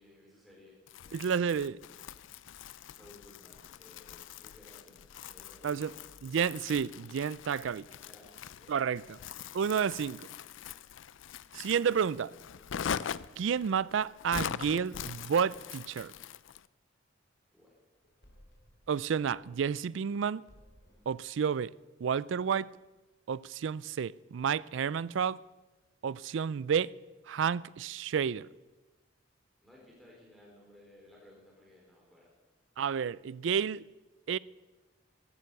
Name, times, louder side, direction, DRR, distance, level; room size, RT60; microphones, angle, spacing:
voice 1, 0.0-1.5 2.9-6.1 8.0-8.3 8.6-8.9 17.5-17.7 29.6-32.3, left 1 dB, ahead, 3.9 m, -58 dB
Crumpling crinkling, 0.9-16.7, left 8 dB, 80° left, 0.4 m, -43 dB
voice 2, 1.1-1.8 5.6-5.9 6.2-7.9 8.7-9.2 9.5-10.3 11.5-12.3 13.4-16.1 18.9-20.4 21.1-21.7 22.0-22.7 23.3-25.4 26.0-26.9 27.3-28.5 32.8-33.8 34.3-34.4, right 7 dB, 75° right, 0.4 m, -30 dB
sound 1, 17.9-20.2 20.5-21.2, equal, 60° left, 4.4 m, -61 dB
14.5 x 12.5 x 6.7 m
head